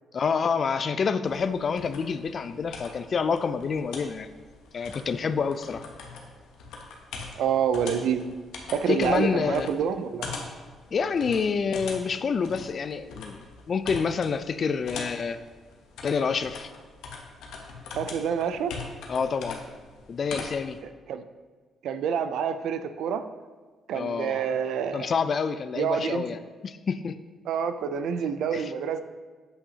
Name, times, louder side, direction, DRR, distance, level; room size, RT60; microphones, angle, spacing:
voice 1, 0.1-4.3 4.7-5.9 8.9-9.7 10.9-15.4 16.0-16.7 19.1-19.6 20.1-20.8 23.9-24.5 24.9-27.2 28.5-28.7, left 5 dB, 50° left, 12 dB, 0.3 m, -28 dB
sound 1, 1.2-20.8, left 4 dB, 85° left, 0.8 m, -42 dB
voice 2, 7.4-8.2 8.7-10.3 17.9-18.7 21.1-21.2 21.8-23.2 23.9-25.1 25.8-26.3 27.5-29.0, right 7 dB, 75° right, 10 dB, 0.4 m, -27 dB
7.9 x 5.6 x 2.8 m, 1.4 s
cardioid pair, 90°, 0 cm